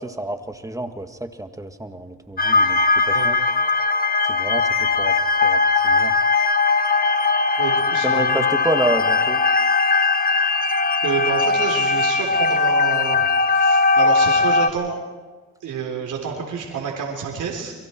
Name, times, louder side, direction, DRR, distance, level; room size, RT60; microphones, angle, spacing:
voice 1, 0.0-2.8 3.1-3.4 4.3-5.2 5.4-6.1 8.0-9.4, right 2 dB, 10° right, 7 dB, 1.8 m, -28 dB
sound 1, 2.4-14.7, left 4 dB, 30° left, 1.4 m, -19 dB
voice 2, 7.6-8.5 11.0-15.0 15.6-17.7, right 6 dB, 80° right, -1 dB, 3.6 m, -28 dB
30.0 x 23.0 x 4.5 m, 1.3 s
cardioid pair, 75°, 31 cm